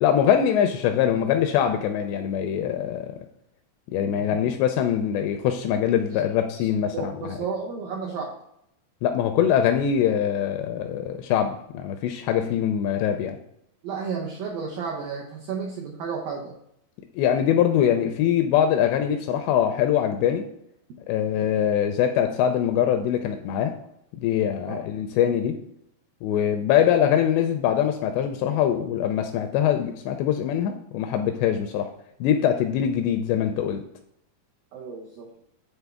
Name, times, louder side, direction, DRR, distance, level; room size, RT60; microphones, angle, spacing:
voice 1, 0.0-3.1 3.9-7.1 9.0-13.4 17.2-20.5 21.1-23.7 24.2-25.6 26.2-31.9 32.2-33.8, left 9 dB, 85° left, 6 dB, 2.5 m, -23 dB
voice 2, 6.9-8.3 13.8-16.5 24.7-24.8 34.7-35.3, right 5 dB, 90° right, -1 dB, 2.0 m, -32 dB
9.8 x 4.0 x 3.5 m, 0.76 s
omnidirectional pair, 5.3 m